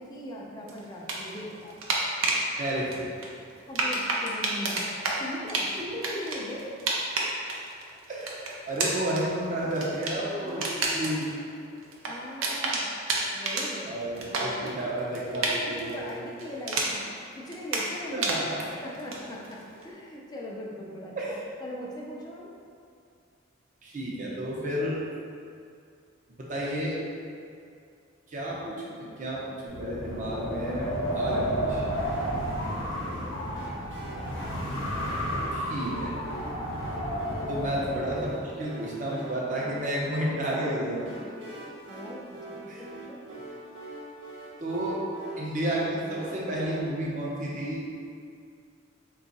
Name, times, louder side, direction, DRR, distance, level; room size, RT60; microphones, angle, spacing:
voice 1, 0.0-1.8 3.7-4.9 5.2-6.8 8.7-9.1 10.4-11.2 12.1-12.9 13.3-17.1 17.3-18.4 18.8-21.2 21.6-22.5 32.6-33.5 37.5-37.7 41.9-43.2, left 1 dB, 20° left, -3 dB, 0.4 m, -40 dB
sound 1, 0.7-2.5 2.9-17.2 17.5-19.8, right 2 dB, 85° right, 0.6 m, -31 dB
voice 2, 2.6-3.1 8.1-8.3 8.7-10.6 10.9-11.2 13.9-16.1 18.1-18.6 21.2-21.4 23.8-25.0 26.4-27.0 28.3-31.9 35.5-36.2 37.5-41.5 42.7-42.8 44.6-45.0 45.4-47.8, right 1 dB, 40° right, -5 dB, 0.7 m, -31 dB
Wind, 29.7-38.4, equal, 70° left, 0.8 m, -31 dB
sound 2, 32.0-46.8, right 1 dB, 70° right, 0.9 m, -44 dB
3.7 x 2.3 x 4.0 m, 2.4 s
head